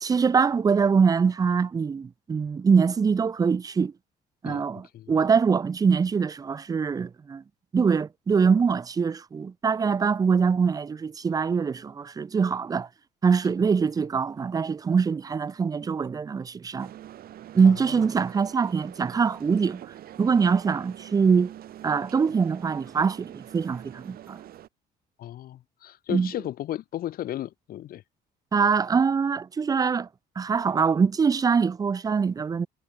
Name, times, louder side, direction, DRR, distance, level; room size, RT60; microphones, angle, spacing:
voice 1, 0.0-3.9 4.4-7.4 7.7-12.9 13.2-16.9 17.5-19.8 20.2-21.5 21.8-24.4 26.1-26.3 28.5-30.1 30.4-32.7, right 5 dB, 20° right, 0.5 m, -23 dB
voice 2, 4.4-5.1 17.6-18.0 25.2-28.0, left 13 dB, 60° left, 0.9 m, -35 dB
sound 1, 16.8-24.7, right 12 dB, 60° right, 2.7 m, -45 dB
cardioid pair, 135°, 18 cm